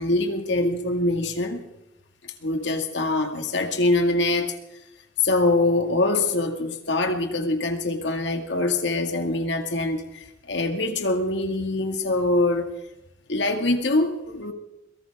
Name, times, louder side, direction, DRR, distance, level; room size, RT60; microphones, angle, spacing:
voice 1, 0.0-1.7 2.2-4.5 5.2-12.7 13.3-14.5, left 2 dB, 70° left, 5 dB, 2.1 m, -24 dB
22.5 x 17.5 x 3.6 m, 0.92 s
head